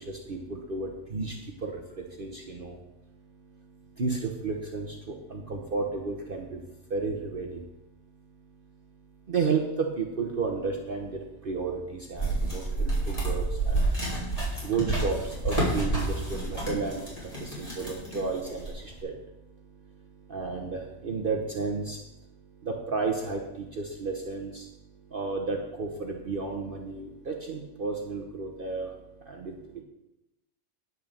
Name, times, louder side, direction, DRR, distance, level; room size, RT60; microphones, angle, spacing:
voice 1, 0.3-1.4 1.6-1.8 2.2-2.8 4.0-5.0 5.3-6.6 6.9-7.6 9.3-11.1 11.4-13.8 14.6-17.0 17.4-19.1 20.3-22.0 22.7-24.6 25.1-28.9 29.3-29.5, right 4 dB, 45° right, 1 dB, 1.1 m, -32 dB
sound 1, 12.2-18.9, right 2 dB, 25° left, 3.8 m, -29 dB
10.5 x 6.6 x 6.6 m, 0.94 s
omnidirectional pair, 1.4 m